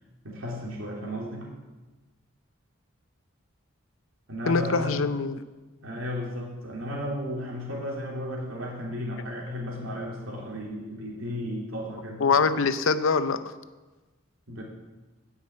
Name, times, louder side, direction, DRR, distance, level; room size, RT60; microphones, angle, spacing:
voice 1, 0.2-1.5 4.3-5.0 5.8-12.3 14.5-14.6, equal, 80° right, -2 dB, 2.9 m, -34 dB
voice 2, 4.5-5.4 12.2-13.4, left 4 dB, 75° left, 12 dB, 0.6 m, -23 dB
9.7 x 6.2 x 8.4 m, 1.2 s
head